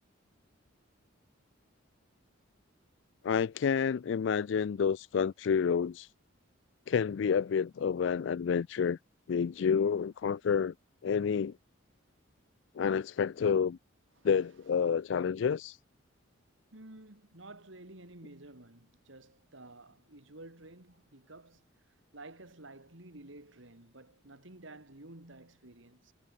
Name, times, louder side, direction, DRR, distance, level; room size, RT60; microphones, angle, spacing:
voice 1, 3.2-6.1 6.9-9.0 9.3-10.7 11.0-11.5 12.8-13.8 14.2-15.8, left 6 dB, 65° left, 0.3 m, -29 dB
voice 2, 16.7-21.7 22.1-26.1, right 2 dB, 75° right, 3.1 m, -52 dB
head